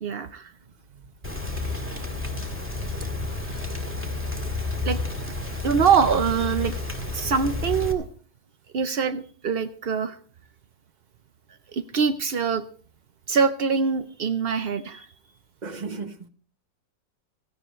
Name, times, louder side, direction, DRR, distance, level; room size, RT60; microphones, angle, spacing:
voice 1, 0.0-0.5 4.8-5.0 5.6-6.7 7.1-8.1 8.7-10.2 11.7-12.6 13.3-15.1, right 6 dB, 75° right, 0.5 m, -24 dB
Rain, 1.2-7.9, left 3 dB, 5° right, 1.8 m, -30 dB
voice 2, 3.3-3.7 15.6-16.3, right 4 dB, 30° right, 0.9 m, -37 dB
16.5 x 14.5 x 3.1 m
omnidirectional pair, 1.9 m